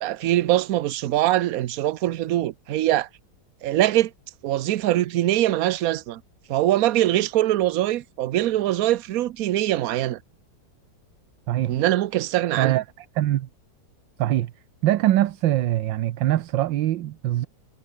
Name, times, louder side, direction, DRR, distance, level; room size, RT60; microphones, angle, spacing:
voice 1, 0.0-3.1 3.6-4.1 4.4-6.2 6.5-10.2 11.7-12.8, right 14 dB, 60° right, 1.0 m, -22 dB
voice 2, 11.5-11.8 12.6-13.5 14.2-14.5 14.8-17.5, right 13 dB, 80° right, 1.5 m, -23 dB
omnidirectional pair, 2.0 m